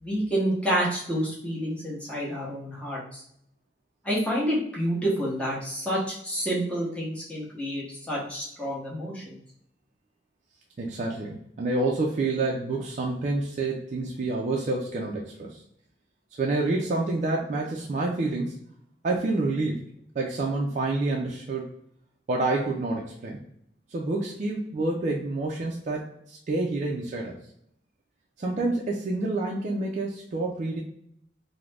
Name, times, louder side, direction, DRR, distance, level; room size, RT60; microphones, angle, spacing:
voice 1, 0.0-3.2 4.0-9.4, equal, 5° left, -5 dB, 0.8 m, -29 dB
voice 2, 10.8-15.6 16.4-18.6 19.0-19.8 20.2-21.6 22.3-23.4 23.9-27.4 28.4-30.8, right 2 dB, 45° right, -2 dB, 0.3 m, -28 dB
2.4 x 2.0 x 3.2 m, 0.72 s
head